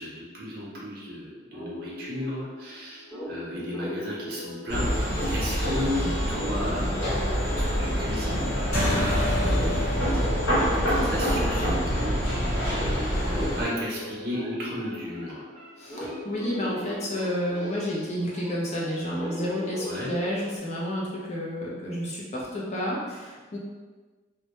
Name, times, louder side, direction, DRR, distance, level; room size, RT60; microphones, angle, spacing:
voice 1, 0.0-4.9 5.2-6.9 7.3-10.0 10.7-15.4 19.9-20.1, left 1 dB, 50° right, -5 dB, 0.6 m, -35 dB
sound 1, 1.5-20.6, left 1 dB, 15° left, 1.1 m, -39 dB
sound 2, 4.7-13.6, equal, 85° left, 1.2 m, -26 dB
voice 2, 6.0-6.3 15.8-23.6, equal, 35° left, -5 dB, 0.5 m, -31 dB
sound 3, 8.7-13.5, equal, 55° left, 1.0 m, -30 dB
2.2 x 2.1 x 2.8 m, 1.4 s
head